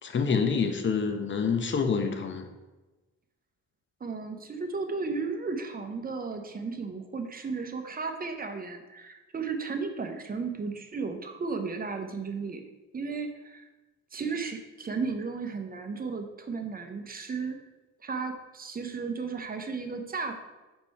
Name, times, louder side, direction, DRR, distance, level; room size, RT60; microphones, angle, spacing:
voice 1, 0.0-2.5, left 5 dB, 40° left, 6 dB, 0.8 m, -27 dB
voice 2, 4.0-12.6 12.9-13.7 14.1-17.6 18.0-20.3, right 4 dB, 30° right, 6 dB, 0.8 m, -34 dB
5.3 x 4.4 x 4.2 m, 1.1 s
cardioid pair, 90°, 30 cm